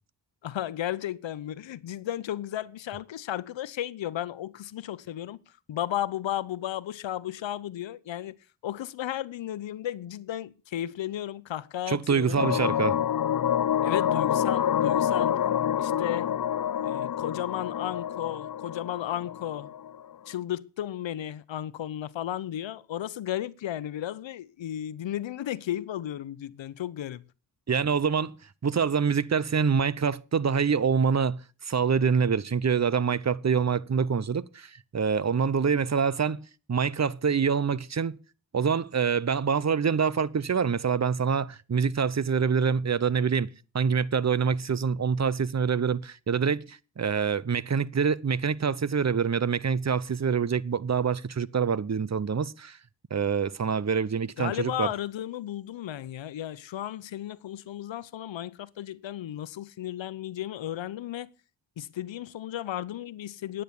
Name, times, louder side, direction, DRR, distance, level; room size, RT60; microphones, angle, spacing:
voice 1, 0.4-5.4 5.7-8.4 8.6-12.4 13.8-15.3 15.8-16.3 16.8-19.7 20.3-27.2 54.4-61.3 61.8-63.6, left 12 dB, 80° left, 0.9 m, -34 dB
voice 2, 11.9-13.0 27.7-28.3 28.6-36.4 36.7-38.2 38.5-52.8 53.1-54.9, right 6 dB, 35° right, 0.9 m, -26 dB
sound 1, 12.4-20.0, left 9 dB, 50° left, 0.6 m, -27 dB
10.5 x 9.2 x 8.2 m
cardioid pair, 60°, 44 cm